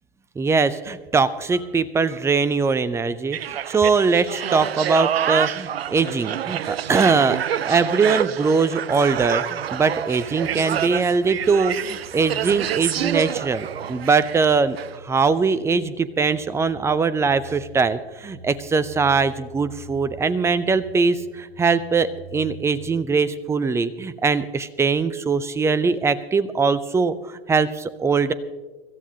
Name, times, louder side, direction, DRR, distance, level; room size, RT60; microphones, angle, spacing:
voice 1, 0.4-28.3, right 4 dB, 10° right, 15 dB, 0.5 m, -21 dB
sound 1, 3.3-14.5 14.8-14.9, right 10 dB, 75° right, 0.5 m, -27 dB
sound 2, 9.7-23.1, right 3 dB, 60° right, 2.9 m, -45 dB
25.0 x 13.5 x 2.8 m, 1.3 s
figure-of-eight pair, 90°, 30 cm